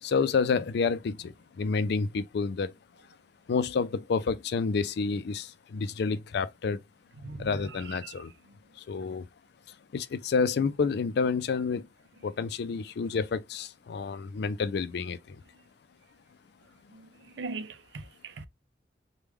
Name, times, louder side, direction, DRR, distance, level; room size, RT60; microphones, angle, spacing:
voice 1, 0.0-2.7 3.5-6.8 7.4-8.3 8.8-9.3 9.7-11.9 12.2-15.4, left 5 dB, 65° left, 0.4 m, -29 dB
voice 2, 7.2-8.1 16.9-17.1 17.4-18.5, right 3 dB, 90° right, 0.5 m, -40 dB
3.4 x 2.2 x 3.1 m
head